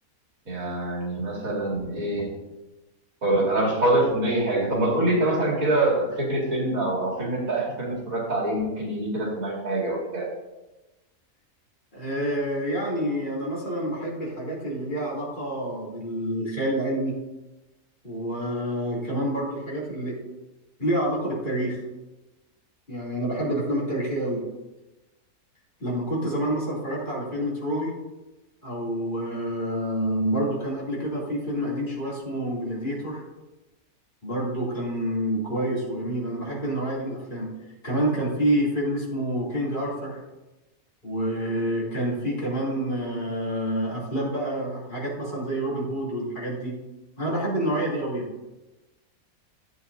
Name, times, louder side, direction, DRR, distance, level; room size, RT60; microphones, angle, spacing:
voice 1, 0.5-2.3 3.2-10.3, right 1 dB, 70° right, -4 dB, 2.6 m, -25 dB
voice 2, 11.9-17.2 18.0-20.2 20.8-21.8 22.9-24.4 25.8-27.9 28.6-33.2 34.2-37.5 37.8-40.2 41.0-46.7 47.2-48.3, right 1 dB, 35° left, -6 dB, 3.0 m, -28 dB
11.0 x 8.5 x 2.7 m, 1.0 s
omnidirectional pair, 1.5 m